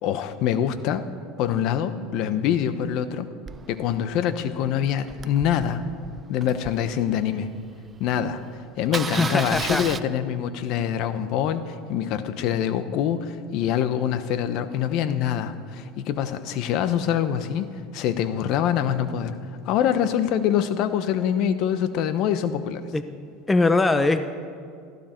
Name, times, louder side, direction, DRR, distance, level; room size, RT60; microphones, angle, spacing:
voice 1, 0.0-1.1 1.4-3.3 3.7-5.8 6.3-7.5 8.0-8.4 8.8-19.4 19.6-22.8, left 9 dB, 55° left, 12 dB, 1.0 m, -25 dB
Engine starting, 3.5-7.7 8.1-8.2 8.4-8.6 8.8-10.0, right 6 dB, 25° right, 0.6 m, -35 dB
voice 2, 9.2-9.8 22.9-23.0 23.5-24.2, left 3 dB, 15° left, 10 dB, 0.7 m, -21 dB
19.5 x 14.5 x 4.5 m, 2.3 s
supercardioid pair, 120°, 0 cm